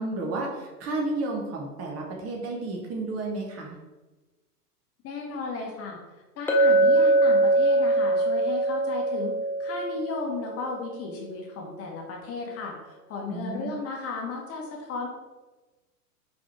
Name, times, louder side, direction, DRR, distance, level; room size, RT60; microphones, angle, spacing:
voice 1, 0.0-3.8 13.3-13.8, right 2 dB, 30° right, -1 dB, 1.5 m, -32 dB
voice 2, 5.0-6.0 6.4-9.3 9.6-15.1, left 4 dB, 30° left, 0 dB, 1.4 m, -35 dB
Chink clink, 6.5-10.6, right 2 dB, 5° left, 0.4 m, -22 dB
5.0 x 4.9 x 4.5 m, 1.2 s
hypercardioid pair, 110°, 48 cm